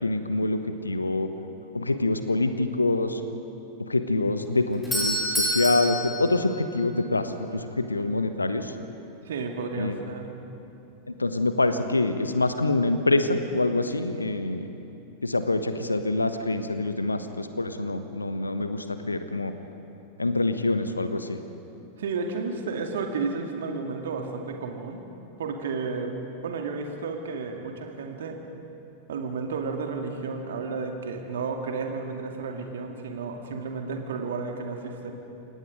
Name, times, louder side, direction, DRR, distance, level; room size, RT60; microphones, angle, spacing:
voice 1, 0.0-1.3 1.7-3.2 3.8-8.7 9.8-10.0 11.1-14.7 15.2-19.5 20.2-21.4, left 2 dB, 80° left, 9 dB, 1.2 m, -26 dB
Doorbell, 4.5-7.3, equal, 5° left, 6.0 m, -29 dB
voice 2, 9.2-10.4 22.0-25.0 25.4-28.4 29.1-35.1, right 4 dB, 60° right, 3 dB, 2.4 m, -32 dB
29.0 x 17.0 x 5.2 m, 2.8 s
figure-of-eight pair, 90°, 0 cm